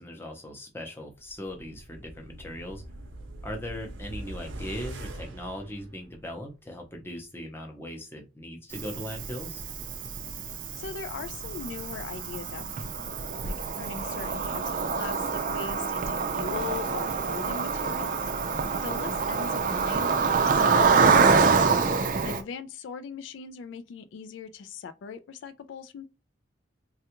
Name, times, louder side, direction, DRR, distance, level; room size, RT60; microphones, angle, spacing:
voice 1, 0.0-2.8 3.4-9.6, equal, 10° left, 0.6 m, -39 dB
sound 1, 1.3-6.5 6.8-6.9, right 1 dB, 85° right, 0.6 m, -42 dB
Cricket, 8.7-22.4, right 5 dB, 45° right, 0.4 m, -26 dB
voice 2, 10.8-12.7 13.0-13.1 13.4-18.2 18.8-20.6 22.2-26.1, left 5 dB, 75° left, 0.3 m, -39 dB
3.3 x 2.3 x 2.9 m
head